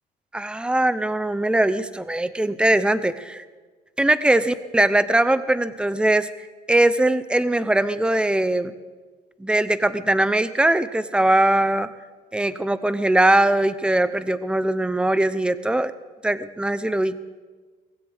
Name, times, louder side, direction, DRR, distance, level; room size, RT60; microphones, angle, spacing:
voice 1, 0.3-3.4 4.0-6.3 6.7-8.7 9.4-11.9 12.3-15.9 16.2-17.2, right 1 dB, 5° right, 13 dB, 0.7 m, -21 dB
21.5 x 16.0 x 3.6 m, 1.4 s
cardioid pair, 110°, 17 cm